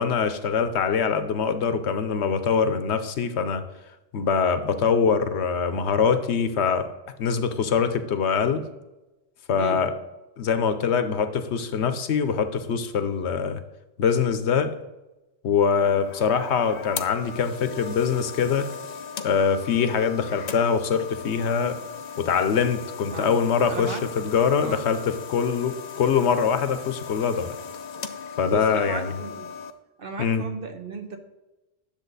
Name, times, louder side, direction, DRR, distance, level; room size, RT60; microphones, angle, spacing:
voice 1, 0.0-3.6 4.1-6.9 7.2-8.6 9.5-9.9 10.4-13.6 14.0-14.8 15.4-18.7 19.2-21.8 22.2-27.5 28.4-29.1 30.2-30.4, left 6 dB, 80° left, 10 dB, 1.1 m, -23 dB
sound 1, 15.7-29.7, left 6 dB, 45° left, 0.7 m, -38 dB
voice 2, 23.7-24.1 24.6-24.9 27.9-28.1 28.4-29.5 30.0-31.2, right 4 dB, 55° right, 6 dB, 1.3 m, -35 dB
10.0 x 7.2 x 4.0 m, 1.1 s
omnidirectional pair, 1.1 m